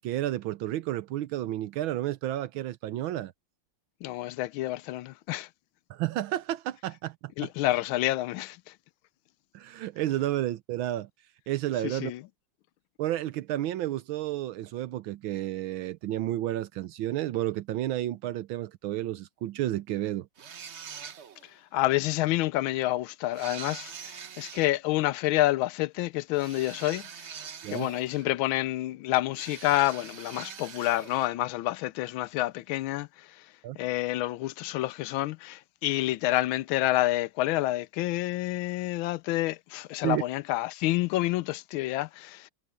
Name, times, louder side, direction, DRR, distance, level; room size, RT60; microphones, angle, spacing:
voice 1, 0.0-3.3 5.9-7.5 9.5-11.1 11.5-12.1 13.0-20.3 27.6-27.9 33.6-33.8 40.0-40.2, right 14 dB, 80° right, 1.4 m, -31 dB
voice 2, 4.0-5.5 7.4-8.6 11.8-12.2 21.4-27.1 27.7-33.3 33.8-42.5, left 16 dB, 80° left, 1.4 m, -28 dB
sound 1, 20.4-21.5 23.3-24.7 26.3-28.4 29.3-31.4, right 7 dB, 50° right, 0.9 m, -43 dB
omnidirectional pair, 2.3 m